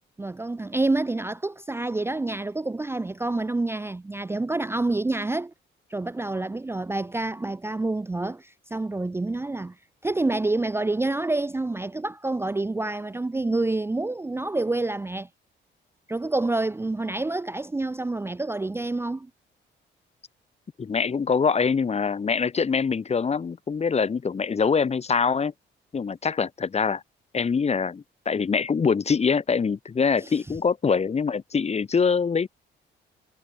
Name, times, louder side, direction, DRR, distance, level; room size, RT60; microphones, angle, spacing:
voice 1, 0.2-5.5 5.9-9.8 10.0-15.3 16.1-19.3 30.2-30.3, right 2 dB, 10° right, 0.5 m, -28 dB
voice 2, 20.8-25.5 25.9-27.0 27.3-32.5, left 5 dB, 30° left, 1.1 m, -24 dB
cardioid pair, 90°, 20 cm